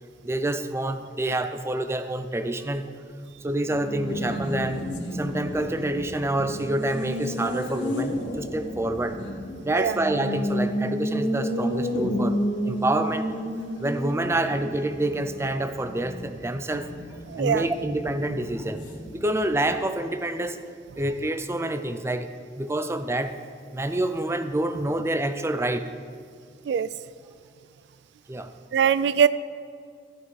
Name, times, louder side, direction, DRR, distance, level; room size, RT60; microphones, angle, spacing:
voice 1, 0.2-2.9 3.4-9.2 9.6-13.3 13.8-16.9 17.4-18.8 19.1-20.6 21.0-22.3 22.6-23.3 23.7-25.8 28.3-28.5, right 1 dB, 15° right, 9 dB, 0.5 m, -27 dB
Race car auto racing, 3.5-19.8, equal, 85° left, 1.5 m, -32 dB
voice 2, 17.3-17.7 26.7-26.9 28.7-29.3, right 7 dB, 70° right, 15 dB, 0.3 m, -21 dB
15.0 x 8.1 x 4.8 m, 2.2 s
head